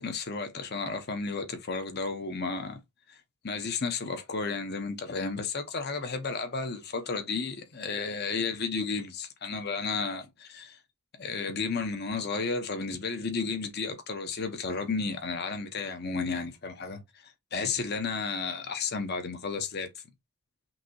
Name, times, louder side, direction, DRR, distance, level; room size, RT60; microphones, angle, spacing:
voice 1, 0.0-2.8 3.1-3.2 3.4-10.8 11.2-19.9, left 4 dB, 50° left, 1.0 m, -33 dB
5.9 x 2.9 x 2.8 m
head